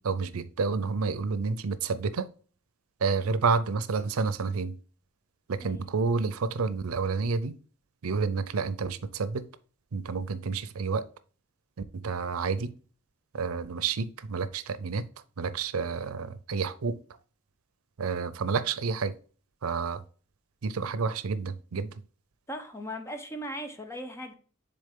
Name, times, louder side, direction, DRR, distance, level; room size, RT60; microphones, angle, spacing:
voice 1, 0.0-2.3 3.0-4.7 5.5-7.6 8.0-9.5 9.9-11.1 11.9-12.7 13.3-15.1 15.4-17.0 18.0-19.2 19.6-20.0 20.6-21.9, right 4 dB, 90° right, 0.5 m, -29 dB
voice 2, 22.5-24.3, equal, 15° left, 0.8 m, -38 dB
6.7 x 4.0 x 3.7 m
head